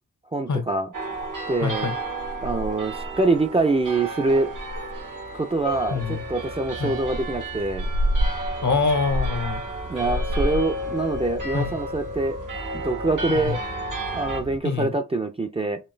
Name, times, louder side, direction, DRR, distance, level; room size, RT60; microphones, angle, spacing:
voice 1, 0.3-0.9 1.5-1.9 2.4-4.5 5.3-7.9 9.9-12.4 12.7-13.6 14.1-15.8, right 2 dB, 20° right, 0.4 m, -25 dB
sound 1, 0.9-14.4, right 1 dB, 85° right, 1.3 m, -30 dB
voice 2, 1.6-2.0 5.9-6.2 6.8-6.9 8.6-9.6 11.5-11.7 13.3-13.5 14.6-14.9, left 5 dB, 70° left, 0.9 m, -25 dB
sound 2, 5.7-14.6, right 2 dB, 60° right, 1.0 m, -40 dB
4.3 x 3.1 x 3.2 m
wide cardioid pair, 90°, 31 cm